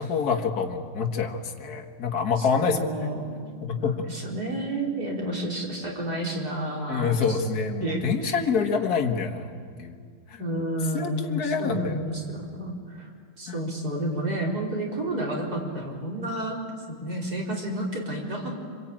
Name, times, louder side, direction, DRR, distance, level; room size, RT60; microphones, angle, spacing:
voice 1, 0.0-2.9 3.6-4.0 6.9-10.0 10.3-10.4 10.9-12.1 13.5-13.6, left 5 dB, 50° left, 3 dB, 2.1 m, -27 dB
voice 2, 2.4-3.4 3.7-7.4 7.8-8.3 10.4-13.1 13.4-16.6 16.9-18.6, right 1 dB, 45° right, -2 dB, 4.9 m, -30 dB
27.0 x 25.0 x 8.9 m, 2.1 s
omnidirectional pair, 2.3 m